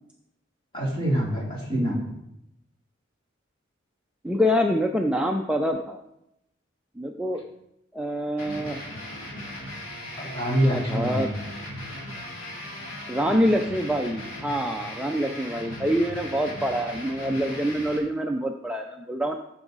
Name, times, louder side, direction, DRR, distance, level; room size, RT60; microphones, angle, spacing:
voice 1, 0.7-2.0 10.2-11.3, equal, 25° left, -4 dB, 3.1 m, -25 dB
voice 2, 1.7-2.0 4.2-6.0 7.0-7.4 7.9-8.8 10.6-11.3 13.1-19.4, equal, 5° right, 2 dB, 0.4 m, -26 dB
sound 1, 8.4-18.0, left 1 dB, 75° left, 3.1 m, -38 dB
14.5 x 7.1 x 4.0 m, 0.85 s
head